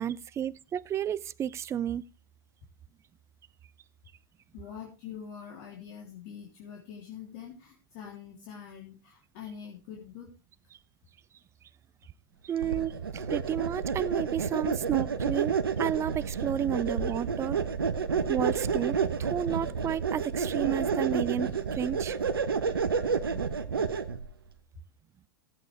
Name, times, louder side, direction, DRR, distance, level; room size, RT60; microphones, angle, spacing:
voice 1, 0.0-2.0 12.4-17.6 18.3-22.2, right 9 dB, 25° right, 0.5 m, -32 dB
voice 2, 4.5-10.4, left 8 dB, 55° left, 3.1 m, -44 dB
sound 1, 12.6-24.3, right 6 dB, 90° right, 1.1 m, -30 dB
16.5 x 8.3 x 3.3 m
hypercardioid pair, 105°, 12 cm